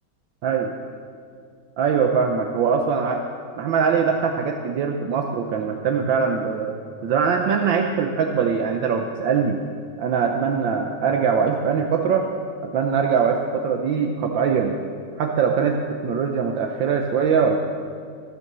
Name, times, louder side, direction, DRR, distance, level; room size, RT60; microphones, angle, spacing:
voice 1, 1.8-3.2 3.6-6.7 7.0-9.6 10.0-12.3 12.6-14.8 15.2-17.6, right 6 dB, 75° right, 3 dB, 1.5 m, -22 dB
15.0 x 9.8 x 6.7 m, 2.3 s
omnidirectional pair, 2.1 m